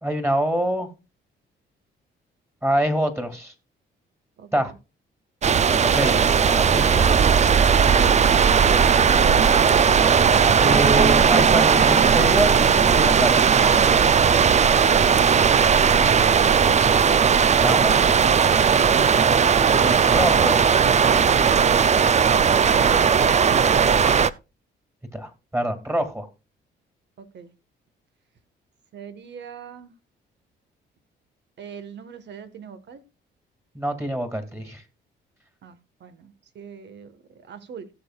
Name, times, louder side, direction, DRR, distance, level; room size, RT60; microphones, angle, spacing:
voice 1, 0.0-0.9 2.6-3.5 4.5-4.7 5.8-7.1 10.6-13.4 17.6-18.1 19.7-20.6 25.1-26.3 33.7-34.8, right 1 dB, 15° right, 2.5 m, -25 dB
voice 2, 4.4-4.8 27.2-27.5 28.9-30.0 31.6-33.0 35.6-37.9, right 7 dB, 60° right, 1.6 m, -42 dB
sound 1, 5.4-24.3, right 6 dB, 35° right, 0.6 m, -17 dB
17.0 x 6.9 x 2.4 m
cardioid pair, 90°, 20 cm